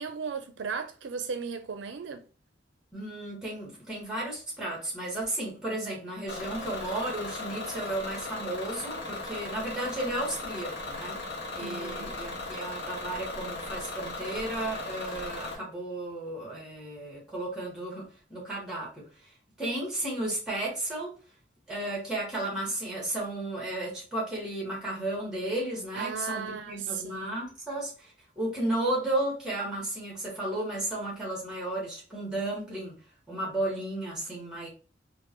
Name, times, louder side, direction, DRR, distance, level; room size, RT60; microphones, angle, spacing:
voice 1, 0.0-2.2 11.6-12.1 26.0-27.4, right 5 dB, 80° right, 0.4 m, -36 dB
voice 2, 2.9-11.2 11.5-19.0 19.6-21.1 21.7-32.9 33.3-34.7, right 1 dB, 5° right, 1.7 m, -33 dB
Bus / Engine, 6.3-15.6, left 2 dB, 65° left, 1.1 m, -37 dB
3.7 x 2.6 x 2.9 m
head